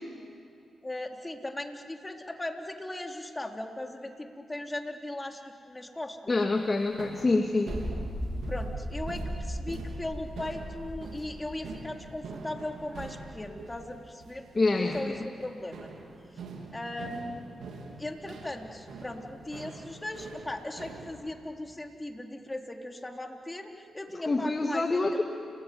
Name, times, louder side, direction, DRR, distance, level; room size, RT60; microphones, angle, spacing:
voice 1, 0.8-5.4 5.7-6.4 8.5-14.5 14.8-15.9 16.7-17.6 18.0-24.8, left 1 dB, 20° left, 3 dB, 3.9 m, -38 dB
voice 2, 6.3-7.8 14.5-15.3 24.3-25.2, left 3 dB, 35° left, 4 dB, 2.3 m, -26 dB
sound 1, 6.5-21.2, right 3 dB, 70° right, 3.5 m, -45 dB
sound 2, 7.7-12.4 12.7-12.8, equal, ahead, 5.4 m, -37 dB
29.5 x 21.0 x 9.6 m, 2.5 s
hypercardioid pair, 40°, 0 cm